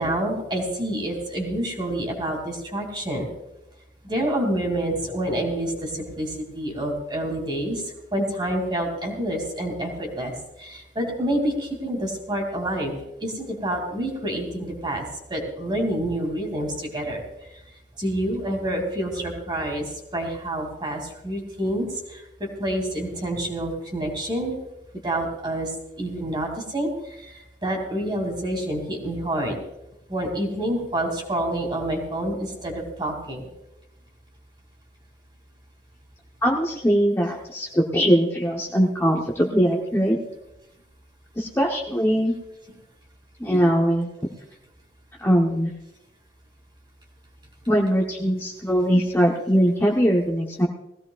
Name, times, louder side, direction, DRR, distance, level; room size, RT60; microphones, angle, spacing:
voice 1, 0.0-3.3 4.0-10.3 10.6-12.9 13.2-15.0 15.3-17.2 18.0-24.6 25.0-25.7 26.0-29.6 30.1-33.4 43.4-43.6, right 1 dB, 25° right, 2 dB, 2.6 m, -28 dB
voice 2, 36.4-40.2 41.4-42.3 43.4-44.1 45.2-45.7 47.7-50.7, equal, 15° left, -1 dB, 0.9 m, -21 dB
20.0 x 15.5 x 2.4 m, 0.92 s
head